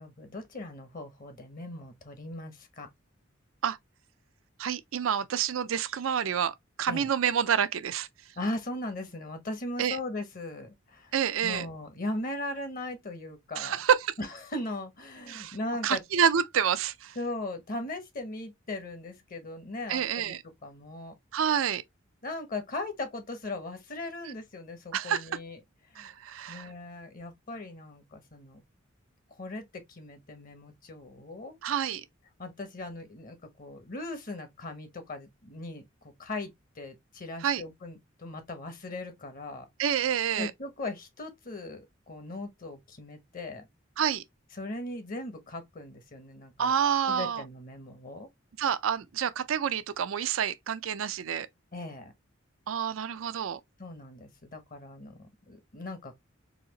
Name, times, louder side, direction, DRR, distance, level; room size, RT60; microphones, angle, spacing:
voice 1, 0.0-2.9 6.9-7.1 8.4-11.1 11.4-13.8 14.2-16.0 17.1-20.4 20.6-21.1 22.2-25.6 25.9-26.1 26.5-28.6 29.4-31.6 32.4-39.7 40.4-43.7 44.5-46.7 47.1-48.3 51.7-52.1 53.8-56.1, left 2 dB, 45° left, 0.9 m, -38 dB
voice 2, 4.6-8.1 9.8-10.0 11.1-11.7 13.6-14.1 15.3-15.6 15.8-17.2 19.9-20.4 21.3-21.8 24.9-25.2 26.0-26.7 31.6-32.0 37.4-37.6 39.8-40.5 44.0-44.2 46.6-47.4 48.6-51.5 52.7-53.6, right 8 dB, 80° right, 0.4 m, -28 dB
4.1 x 2.8 x 2.8 m
head